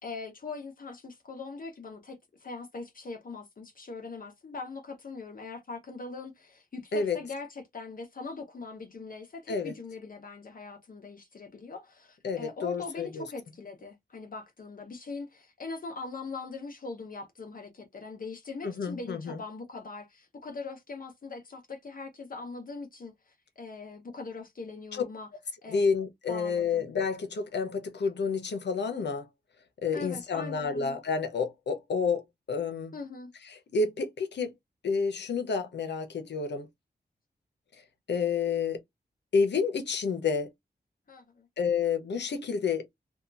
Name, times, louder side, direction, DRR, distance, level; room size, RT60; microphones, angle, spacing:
voice 1, 0.0-25.3 25.6-25.9 26.3-26.9 29.9-31.0 32.9-33.3 41.1-41.5, left 4 dB, 55° left, 0.8 m, -41 dB
voice 2, 12.2-13.3 18.6-19.4 24.9-25.0 25.7-29.3 29.8-32.9 33.4-34.5 34.8-36.7 37.7-37.8 38.1-38.8 39.3-40.5 41.6-42.8, left 5 dB, 80° left, 0.8 m, -29 dB
2.8 x 2.3 x 2.4 m
wide cardioid pair, 95°, 18 cm